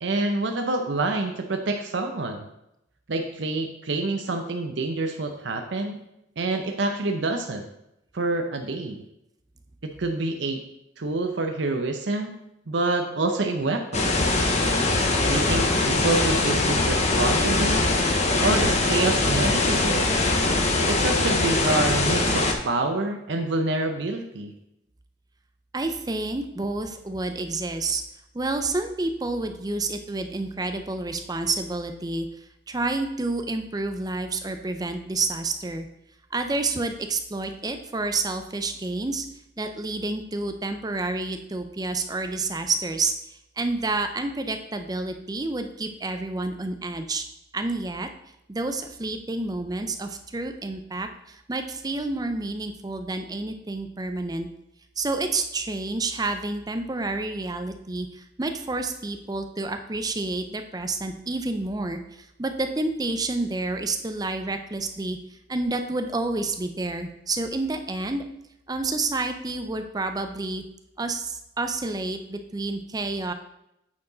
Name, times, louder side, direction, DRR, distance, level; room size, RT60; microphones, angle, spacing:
voice 1, 0.0-2.5 3.1-6.0 6.4-7.6 8.1-9.0 9.8-10.6 11.0-12.4 12.7-14.2 15.2-17.8 18.4-20.1 20.9-24.5, right 2 dB, 65° right, 4 dB, 0.7 m, -27 dB
sound 1, 13.9-22.5, left 2 dB, 35° left, 0.8 m, -22 dB
voice 2, 25.7-28.0 28.3-32.3 32.7-35.9 36.3-39.2 39.6-47.2 47.5-48.1 48.5-54.5 55.0-65.2 65.5-68.2 68.7-70.6 71.0-73.3, right 2 dB, 20° right, 7 dB, 0.5 m, -29 dB
8.5 x 4.6 x 3.9 m, 0.83 s
head